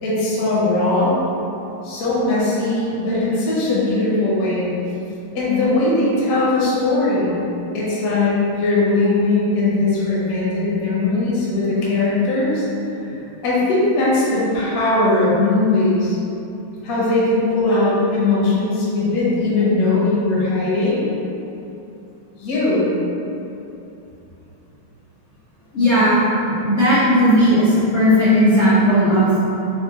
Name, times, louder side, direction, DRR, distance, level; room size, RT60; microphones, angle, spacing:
voice 1, 0.0-1.1 1.8-4.7 5.3-7.4 7.7-12.6 13.4-16.2 16.8-21.0 22.4-22.9, left 2 dB, 55° left, -8 dB, 1.0 m, -19 dB
voice 2, 25.7-26.2 26.5-29.2, equal, 80° left, -13 dB, 0.6 m, -15 dB
4.2 x 2.2 x 3.5 m, 2.8 s
omnidirectional pair, 2.4 m